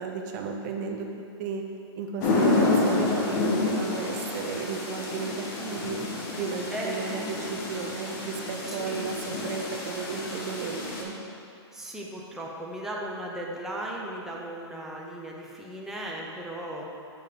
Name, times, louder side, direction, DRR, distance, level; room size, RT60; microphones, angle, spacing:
voice 1, 0.0-1.7 2.0-6.0 6.4-11.2, right 5 dB, 40° right, 3 dB, 0.5 m, -34 dB
sound 1, 2.2-11.0, left 2 dB, 45° left, 1.3 m, -29 dB
voice 2, 6.7-7.6 8.7-9.0 11.7-16.8, right 1 dB, 5° right, -3 dB, 0.6 m, -36 dB
7.6 x 5.3 x 3.7 m, 2.6 s
hypercardioid pair, 145°, 14 cm